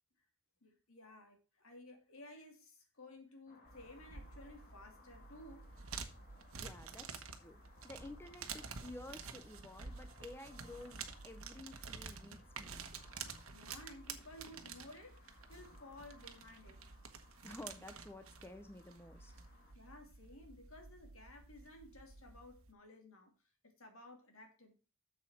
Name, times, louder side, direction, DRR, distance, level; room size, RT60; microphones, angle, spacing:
voice 1, 0.6-5.8 13.5-16.9 19.7-24.7, left 1 dB, 70° left, 2.9 m, -56 dB
sound 1, 3.5-19.7, left 3 dB, 45° left, 2.1 m, -65 dB
sound 2, 3.7-22.7, right 5 dB, 75° right, 1.3 m, -50 dB
voice 2, 6.6-12.9 17.4-19.3, left 1 dB, 10° left, 0.7 m, -52 dB
7.4 x 7.2 x 4.9 m
head